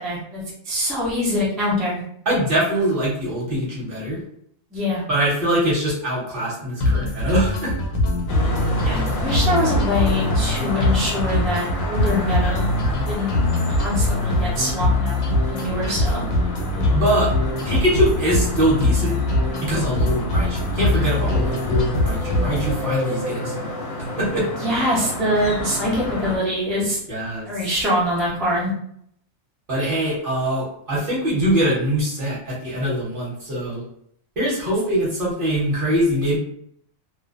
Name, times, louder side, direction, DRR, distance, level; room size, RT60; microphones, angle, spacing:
voice 1, 0.0-2.0 4.7-5.0 8.8-12.6 13.1-13.3 13.7-15.2 15.5-16.2 24.6-27.0 27.5-28.7, equal, ahead, -7 dB, 0.3 m, -24 dB
voice 2, 2.3-4.2 5.1-7.7 16.9-17.3 17.6-19.2 19.6-23.7 24.2-24.5 27.1-27.5 29.7-33.8 34.4-36.4, equal, 45° right, -6 dB, 0.9 m, -23 dB
sound 1, 6.8-22.8, left 2 dB, 75° left, 1.0 m, -22 dB
sound 2, 8.3-26.4, left 1 dB, 55° left, 0.7 m, -31 dB
2.5 x 2.1 x 2.4 m, 0.68 s
omnidirectional pair, 1.5 m